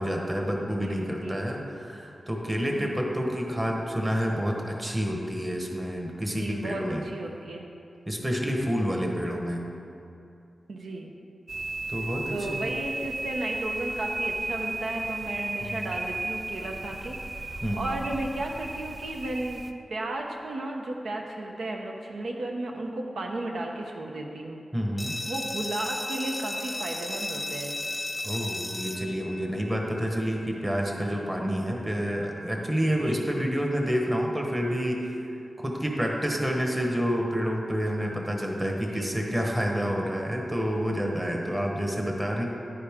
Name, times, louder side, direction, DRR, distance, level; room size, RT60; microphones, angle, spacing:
voice 1, 0.0-7.1 8.1-9.7 11.9-12.7 15.7-15.9 17.6-18.0 24.7-25.1 28.2-35.0 35.6-42.4, equal, 15° right, 0 dB, 1.2 m, -28 dB
voice 2, 0.8-1.5 2.7-3.0 6.2-7.7 10.7-11.1 12.3-19.6 19.9-24.6 25.3-27.8 30.9-31.2 33.0-33.5 38.6-39.4, right 2 dB, 85° right, 1 dB, 0.9 m, -34 dB
sound 1, 11.5-19.7, right 2 dB, 45° right, 0.5 m, -34 dB
sound 2, 25.0-30.4, left 1 dB, 10° left, 0.7 m, -35 dB
9.8 x 9.5 x 3.6 m, 2.7 s
wide cardioid pair, 90°, 0 cm